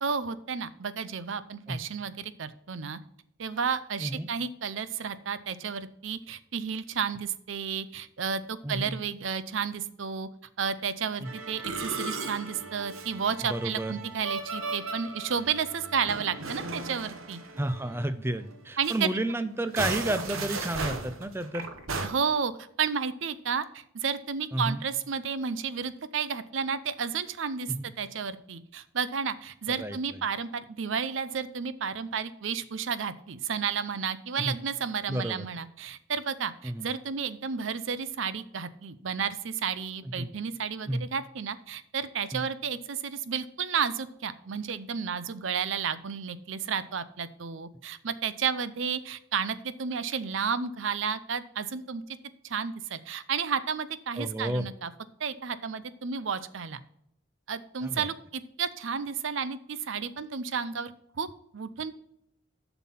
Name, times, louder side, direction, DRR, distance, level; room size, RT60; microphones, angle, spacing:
voice 1, 0.0-3.0 3.4-10.3 10.6-17.4 18.8-19.1 22.0-52.0 52.4-54.9 55.2-56.8 57.5-61.9, right 6 dB, 65° right, 15 dB, 0.6 m, -32 dB
voice 2, 8.6-9.0 11.2-11.3 13.5-13.9 17.6-21.7 24.5-24.8 27.7-27.9 29.8-30.0 34.4-34.6 35.1-35.5 36.6-36.9 40.2-40.3 40.9-41.1 42.3-42.4 54.2-54.7 57.8-58.1, right 1 dB, 10° right, 12 dB, 0.4 m, -31 dB
Musical instrument, 11.2-18.1 18.4-18.6 18.8-19.0 19.6-22.1, right 3 dB, 90° right, 1.0 m, -36 dB
7.3 x 6.0 x 5.7 m, 0.75 s
head